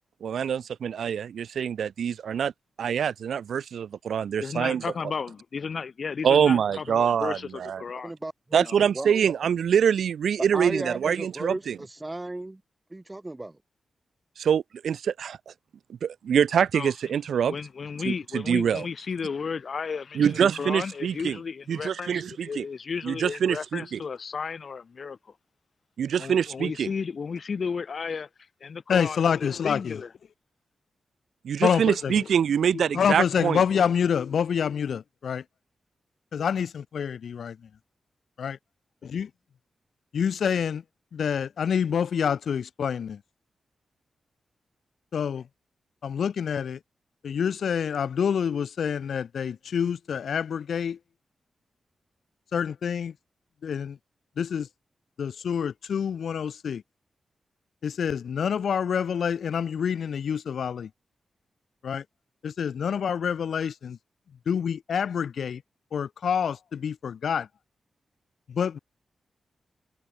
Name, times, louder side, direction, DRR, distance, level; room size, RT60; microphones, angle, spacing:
voice 1, 0.2-2.5 2.8-4.8 6.2-7.8 8.5-11.8 14.4-15.4 16.0-17.5 18.1-18.9 20.2-21.4 21.7-22.6 23.0-24.0 26.0-26.9 31.4-33.6, right 8 dB, 90° right, 0.4 m, -25 dB
voice 2, 4.4-8.1 8.6-8.8 16.7-16.9 17.5-25.3 26.2-28.3 28.6-30.1, left 5 dB, 45° left, 1.9 m, -34 dB
voice 3, 8.0-8.7 8.9-9.2 10.5-12.6 12.9-13.6, right 2 dB, 15° right, 7.5 m, -35 dB
voice 4, 28.9-30.0 31.6-32.2 32.7-35.4 36.3-37.6 38.4-38.6 39.0-39.3 40.1-40.8 41.1-43.2 45.1-45.4 46.0-46.8 47.2-51.0 52.5-53.1 53.6-54.0 54.4-54.7 55.2-56.8 57.8-60.9 61.8-62.0 62.4-64.0 64.5-65.6 65.9-67.5 68.5-68.8, left 7 dB, 70° left, 2.0 m, -27 dB
wide cardioid pair, 170°, 0 cm